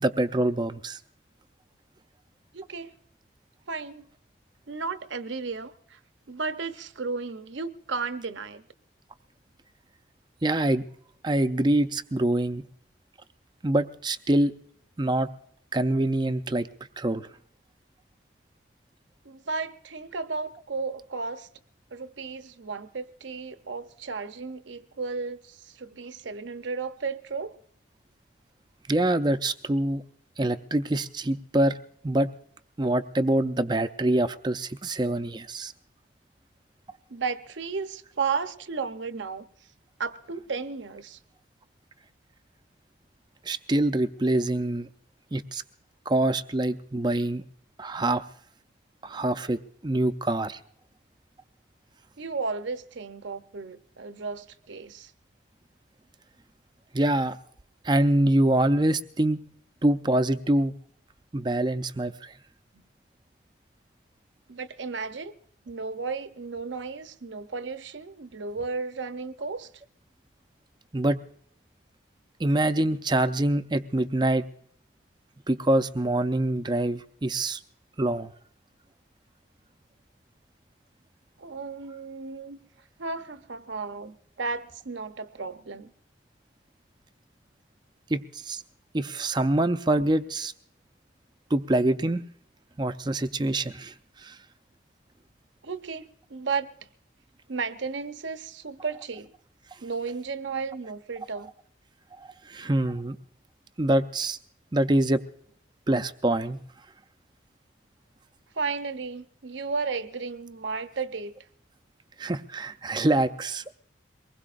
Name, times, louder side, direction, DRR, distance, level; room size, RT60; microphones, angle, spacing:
voice 1, 0.0-1.0 10.4-10.8 11.2-12.6 13.6-14.5 15.0-15.3 15.7-16.7 17.0-17.3 28.9-30.0 30.4-31.8 32.0-32.3 32.8-35.7 43.5-44.9 45.3-45.6 46.1-47.4 47.8-48.2 49.0-50.6 56.9-57.4 57.8-59.4 59.8-60.7 61.3-62.1 70.9-71.2 72.4-74.4 75.5-77.6 78.0-78.3 88.1-88.6 88.9-90.5 91.5-92.2 92.8-93.9 94.2-94.4 102.2-103.2 103.8-104.4 104.7-105.2 105.9-106.6 112.2-113.7, right 1 dB, 20° right, 0.5 m, -25 dB
voice 2, 2.5-2.9 3.7-4.1 4.7-6.0 6.3-8.6 19.2-21.5 21.9-27.5 37.1-39.4 40.0-41.2 52.2-55.1 62.7-62.8 64.5-65.3 65.7-69.7 81.4-82.6 83.0-85.9 95.6-96.7 97.5-99.3 99.8-101.5 108.5-111.3, right 4 dB, 65° right, 0.7 m, -34 dB
23.0 x 20.0 x 2.5 m
head